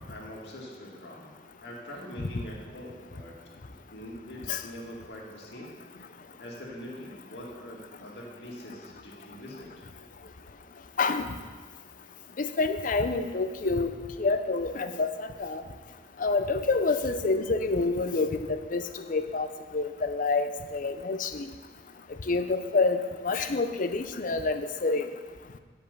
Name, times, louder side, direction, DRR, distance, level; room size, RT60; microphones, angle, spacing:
voice 1, 0.0-1.3 1.6-3.4 3.7-5.8 6.4-9.9, equal, 70° left, -2 dB, 2.0 m, -43 dB
voice 2, 11.0-11.3 12.4-15.6 16.2-19.5 19.7-21.5 22.3-25.1, left 3 dB, 50° left, 9 dB, 0.6 m, -28 dB
10.0 x 5.3 x 6.7 m, 1.5 s
head